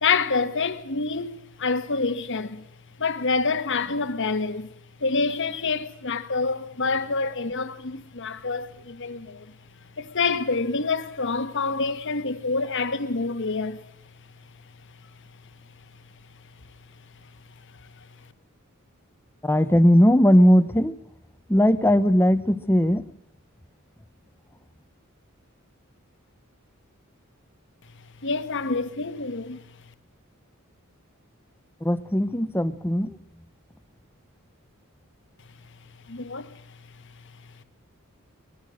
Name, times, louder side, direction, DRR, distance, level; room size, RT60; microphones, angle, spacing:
voice 1, 0.0-2.6 3.0-4.7 5.0-9.5 10.0-13.8 28.2-29.6 36.1-36.8 37.2-37.3, left 4 dB, 60° left, 1.4 m, -27 dB
voice 2, 19.4-21.0 21.5-23.1 31.8-33.2, equal, 10° left, 0.8 m, -19 dB
24.0 x 20.0 x 6.4 m
head